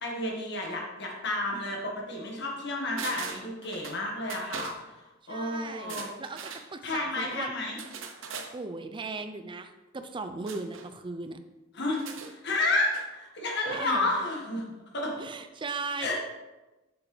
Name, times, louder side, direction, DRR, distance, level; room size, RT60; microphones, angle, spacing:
voice 1, 0.0-4.7 5.3-6.1 6.8-7.8 11.7-12.0 12.3-14.6 14.9-15.1 16.0-16.1, left 2 dB, 60° left, 0 dB, 1.7 m, -31 dB
sound 1, 3.0-4.0 4.3-4.8 5.8-6.7 7.8-8.5 10.5-10.9 11.9-13.1 13.4-13.5, right 5 dB, 80° right, 0.8 m, -40 dB
voice 2, 5.3-7.5 8.5-11.4 13.7-14.1 15.2-16.1, right 3 dB, 25° right, 9 dB, 0.5 m, -37 dB
7.0 x 6.5 x 3.3 m, 1.1 s
head